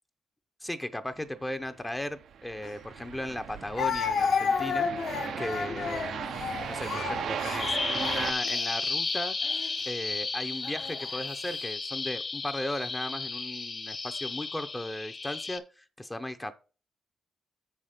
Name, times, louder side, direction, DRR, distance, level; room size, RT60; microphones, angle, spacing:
voice 1, 0.6-4.9 5.4-6.3 6.7-9.4 9.8-16.5, left 1 dB, 10° left, 8 dB, 0.6 m, -36 dB
sound 1, 1.7-8.3, right 8 dB, 70° right, 0.5 m, -37 dB
Speech, 2.6-2.7 3.8-8.7 9.4-9.7 10.6-11.2, left 6 dB, 65° left, 1.0 m, -31 dB
Bird vocalization bird call bird song, 7.6-15.6, left 4 dB, 35° left, 0.9 m, -33 dB
7.1 x 5.7 x 5.0 m, 0.36 s
cardioid pair, 105°, 0 cm